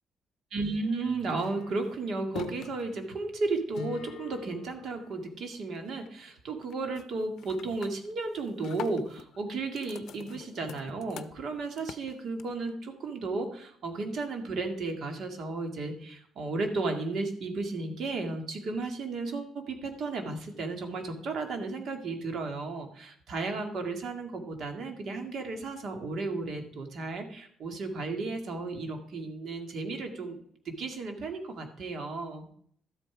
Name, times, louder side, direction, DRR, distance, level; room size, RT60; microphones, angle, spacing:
voice 1, 0.5-32.5, right 3 dB, 65° right, 5 dB, 2.1 m, -34 dB
sound 1, 1.0-5.5 5.9-6.3 6.6-7.1 7.4-12.7, left 9 dB, 75° left, 0.5 m, -45 dB
12.5 x 8.1 x 5.0 m, 0.64 s
cardioid pair, 90°, 0 cm